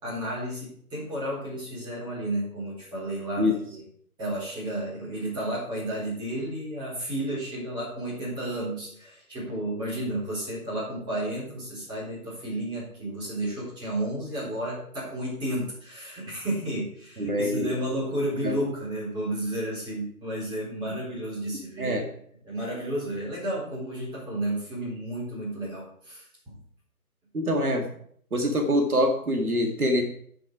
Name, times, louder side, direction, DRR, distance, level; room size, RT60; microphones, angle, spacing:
voice 1, 0.0-3.8 4.2-22.0 22.4-26.3, right 1 dB, 10° right, -7 dB, 4.0 m, -32 dB
voice 2, 17.2-17.7 18.4-18.6 21.8-22.0 27.3-27.8 28.3-30.0, equal, 70° right, 2 dB, 2.0 m, -24 dB
11.0 x 6.2 x 4.8 m, 0.62 s
figure-of-eight pair, 140°, 45 cm